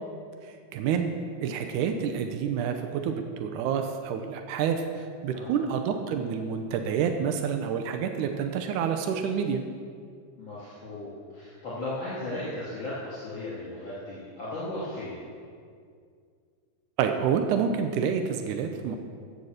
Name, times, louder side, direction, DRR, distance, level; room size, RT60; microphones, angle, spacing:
voice 1, 0.4-1.1 1.4-9.6 17.0-19.0, right 7 dB, 90° right, 5 dB, 2.3 m, -28 dB
voice 2, 5.3-5.8 10.4-15.2, left 1 dB, 40° left, -9 dB, 3.3 m, -36 dB
16.0 x 6.8 x 6.5 m, 2.2 s
omnidirectional pair, 3.5 m